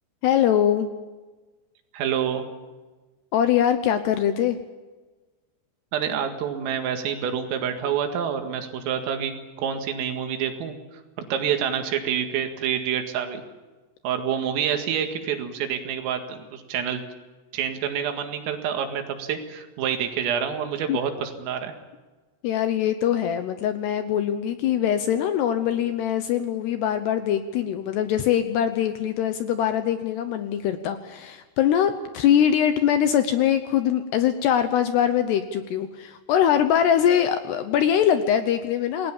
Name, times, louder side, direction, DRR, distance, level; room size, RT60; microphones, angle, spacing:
voice 1, 0.2-0.9 3.3-4.6 20.9-21.0 22.4-39.1, left 9 dB, 75° left, 9 dB, 2.6 m, -22 dB
voice 2, 1.9-2.5 5.9-11.0 11.3-13.4 14.0-17.0 17.5-21.7, right 8 dB, 90° right, 5 dB, 4.6 m, -27 dB
28.0 x 19.0 x 7.2 m, 1.3 s
omnidirectional pair, 5.8 m